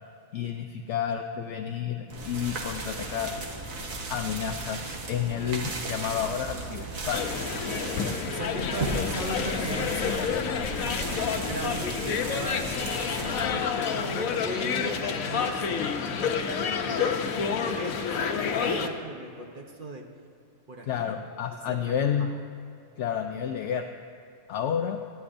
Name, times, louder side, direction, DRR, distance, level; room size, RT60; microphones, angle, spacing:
voice 1, 0.3-3.4 4.1-7.3 8.6-8.7 20.9-22.3 23.0-23.9 24.5-25.0, left 8 dB, 70° left, 5 dB, 0.8 m, -30 dB
sound 1, 2.1-13.5, right 3 dB, 80° right, 1.6 m, -36 dB
sound 2, 7.1-18.9, left 6 dB, 90° left, 1.2 m, -29 dB
voice 2, 8.2-10.3 11.2-12.6 13.0-17.2 17.6-20.1 20.7-21.2 21.7-22.3, right 2 dB, 45° right, 3 dB, 0.9 m, -38 dB
18.0 x 12.5 x 2.6 m, 2.6 s
omnidirectional pair, 1.4 m